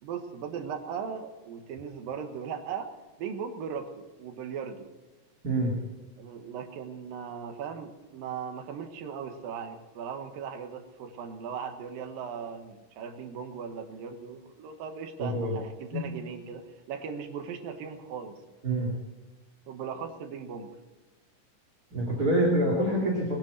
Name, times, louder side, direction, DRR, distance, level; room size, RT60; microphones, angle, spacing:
voice 1, 0.0-2.9 3.2-4.9 6.2-18.4 19.7-20.7, right 7 dB, 85° right, 5 dB, 3.1 m, -38 dB
voice 2, 5.4-5.8 15.2-15.6 15.9-16.1 18.6-18.9 21.9-23.4, right 1 dB, 30° right, -3 dB, 2.7 m, -26 dB
20.5 x 10.5 x 6.6 m, 1.2 s
omnidirectional pair, 3.9 m